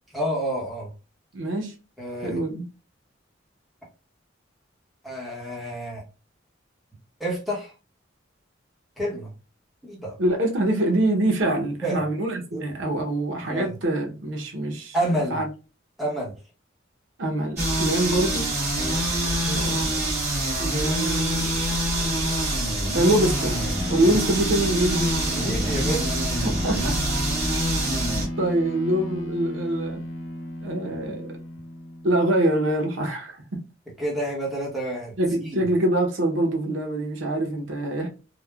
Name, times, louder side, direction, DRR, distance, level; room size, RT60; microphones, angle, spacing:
voice 1, 0.1-0.9 2.0-2.4 5.0-6.0 7.2-7.7 9.0-9.3 9.8-10.2 11.8-12.0 12.5-12.6 13.4-13.8 14.9-15.4 16.0-16.4 18.8-19.1 25.2-26.1 34.0-35.1 35.4-35.6, right 1 dB, ahead, 0.8 m, -29 dB
voice 2, 1.3-1.7 2.2-2.7 10.2-15.0 15.3-15.5 17.2-18.5 19.4-20.1 20.6-21.5 22.9-23.6 23.9-25.1 26.4-27.0 27.8-27.9 28.4-30.0 30.6-31.4 32.0-33.4 35.2-38.1, right 1 dB, 80° right, 0.7 m, -24 dB
sound 1, 17.6-28.3, right 1 dB, 35° right, 1.5 m, -25 dB
sound 2, 23.0-32.7, equal, 85° left, 0.5 m, -34 dB
3.2 x 2.0 x 2.2 m
head